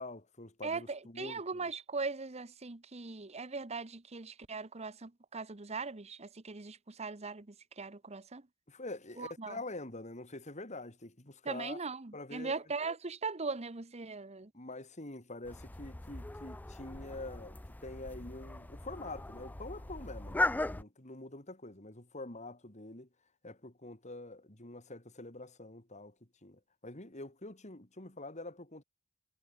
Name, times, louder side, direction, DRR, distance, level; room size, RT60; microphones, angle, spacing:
voice 1, 0.0-1.7 8.7-11.8 12.1-12.6 14.5-23.1 23.4-26.1 26.4-28.8, left 2 dB, 35° left, 3.2 m, -46 dB
voice 2, 0.6-8.4 9.2-9.6 11.4-14.5, right 4 dB, 30° right, 1.0 m, -40 dB
sound 1, 15.4-20.8, left 2 dB, 10° left, 0.4 m, -38 dB
head